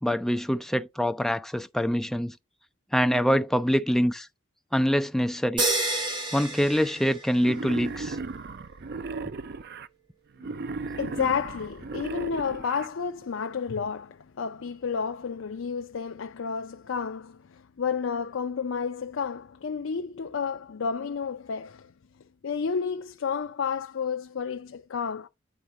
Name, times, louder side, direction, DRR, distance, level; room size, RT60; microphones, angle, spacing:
voice 1, 0.0-2.3 2.9-4.3 4.7-5.6 6.3-8.2, equal, ahead, 0.4 m, -25 dB
sound 1, 5.6-7.7, right 2 dB, 25° right, 1.8 m, -29 dB
Wild animals, 7.4-9.9 10.4-12.9, right 3 dB, 50° right, 0.5 m, -36 dB
voice 2, 10.4-21.9 22.4-25.3, left 6 dB, 65° left, 0.5 m, -31 dB
9.3 x 3.7 x 4.1 m
head